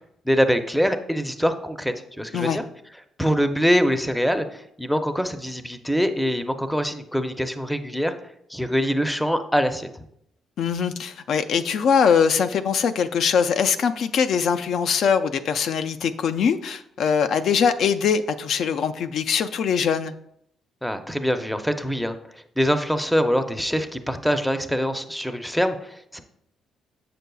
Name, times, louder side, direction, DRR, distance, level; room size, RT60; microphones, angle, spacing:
voice 1, 0.3-2.6 3.2-8.1 8.5-10.0 20.8-22.2 22.6-26.2, equal, ahead, 8 dB, 0.5 m, -24 dB
voice 2, 10.6-20.1, left 7 dB, 70° left, 8 dB, 0.3 m, -22 dB
7.3 x 6.7 x 2.3 m, 0.76 s
cardioid pair, 90°, 0 cm